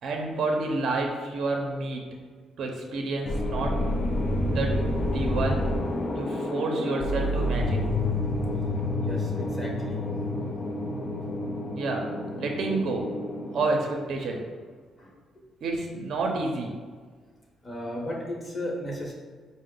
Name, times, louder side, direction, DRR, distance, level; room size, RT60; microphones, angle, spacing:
voice 1, 0.0-2.0 2.6-3.8 4.4-5.7 6.1-7.9 11.7-12.1 12.4-13.1 13.5-14.4 15.6-16.7, right 3 dB, 65° right, 1 dB, 0.5 m, -29 dB
sound 1, 3.3-13.7, left 1 dB, 45° left, 0.5 m, -29 dB
voice 2, 9.0-10.3 15.0-15.5 17.6-19.1, left 1 dB, 30° left, -2 dB, 1.0 m, -36 dB
4.5 x 2.0 x 3.7 m, 1.6 s
cardioid pair, 90°, 0 cm